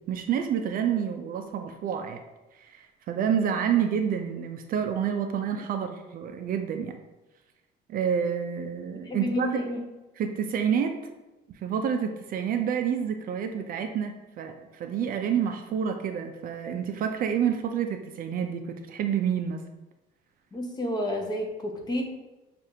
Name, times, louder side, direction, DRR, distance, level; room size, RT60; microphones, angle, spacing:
voice 1, 0.1-2.2 2.6-7.0 7.9-9.6 10.2-11.0 11.5-19.6, right 8 dB, 55° right, 6 dB, 0.4 m, -28 dB
voice 2, 9.0-9.8 20.5-22.0, left 1 dB, 25° left, 2 dB, 0.8 m, -30 dB
6.4 x 2.5 x 2.7 m, 1.1 s
cardioid pair, 110°, 18 cm